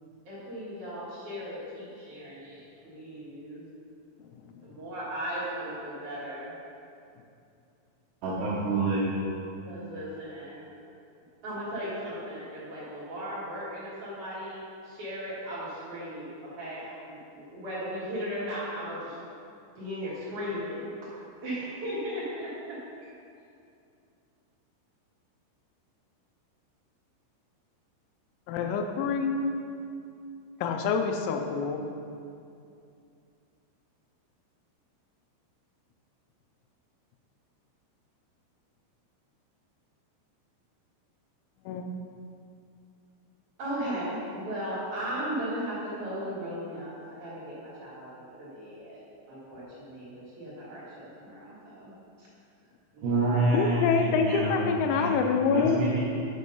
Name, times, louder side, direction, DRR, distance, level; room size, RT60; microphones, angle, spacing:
voice 1, 0.3-3.6 4.6-6.5 9.6-10.9 11.4-19.1 19.7-20.9 21.4-22.8 43.6-49.0 49.3-52.3 52.9-53.4, equal, 55° right, -10 dB, 2.4 m, -37 dB
voice 2, 8.2-9.2 53.0-54.7 55.0-55.1 55.5-56.0, right 2 dB, 75° right, -6 dB, 2.6 m, -27 dB
voice 3, 28.5-29.5 30.6-31.8 41.7-41.9 53.5-55.8, left 5 dB, 90° left, 4 dB, 3.3 m, -26 dB
8.2 x 5.1 x 5.4 m, 2.5 s
omnidirectional pair, 5.8 m